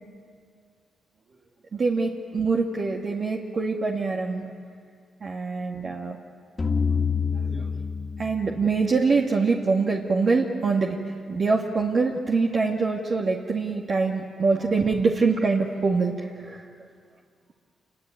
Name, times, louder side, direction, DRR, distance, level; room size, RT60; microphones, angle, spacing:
voice 1, 1.7-4.5 5.2-6.2 7.5-7.7 8.2-11.0 11.3-16.6, right 4 dB, 45° right, -1 dB, 2.2 m, -24 dB
sound 1, 6.6-9.5, left 5 dB, 30° left, 2.5 m, -27 dB
28.0 x 22.5 x 9.4 m, 2.1 s
cardioid pair, 85°, 0 cm